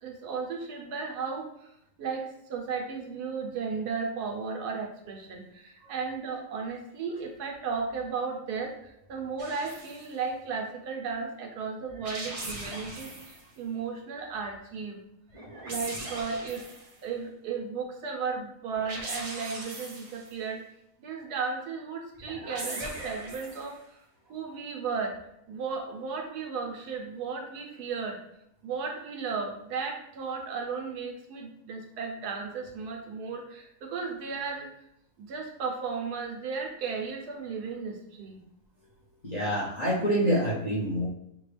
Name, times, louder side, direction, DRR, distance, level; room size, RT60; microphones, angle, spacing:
voice 1, 0.0-1.5 2.0-15.0 15.6-16.6 17.0-20.6 21.0-24.0 24.3-25.2 25.5-28.2 28.6-34.7 35.2-38.4, right 5 dB, 80° right, 2 dB, 1.3 m, -35 dB
sound 1, 9.4-10.1 11.9-13.4 15.3-17.0 18.7-20.3 22.1-23.8, right 2 dB, 35° right, 0.6 m, -40 dB
voice 2, 39.2-41.1, equal, 35° left, -5 dB, 0.8 m, -26 dB
5.9 x 2.3 x 3.3 m, 0.77 s
omnidirectional pair, 1.7 m